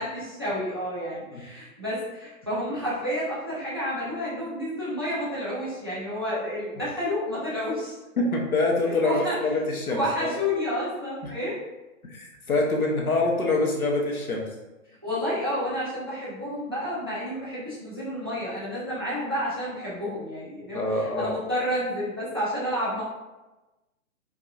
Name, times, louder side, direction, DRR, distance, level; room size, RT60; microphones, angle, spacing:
voice 1, 0.0-8.0 9.0-9.4 9.9-11.6 15.0-23.0, equal, 20° right, -9 dB, 0.4 m, -30 dB
voice 2, 8.2-10.3 11.2-11.3 12.0-14.5 20.7-21.3, left 2 dB, 80° left, -1 dB, 1.0 m, -25 dB
4.6 x 2.5 x 2.3 m, 1.1 s
figure-of-eight pair, 125°, 43 cm